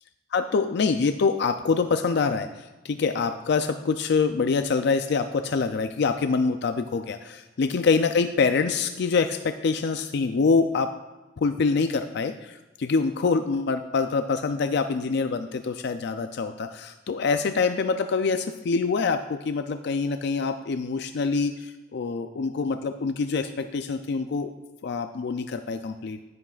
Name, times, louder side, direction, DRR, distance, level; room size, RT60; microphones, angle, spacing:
voice 1, 0.3-2.5 2.8-10.9 11.4-24.5 24.8-26.2, left 4 dB, 60° left, 8 dB, 0.4 m, -25 dB
10.5 x 9.9 x 2.4 m, 1.2 s
head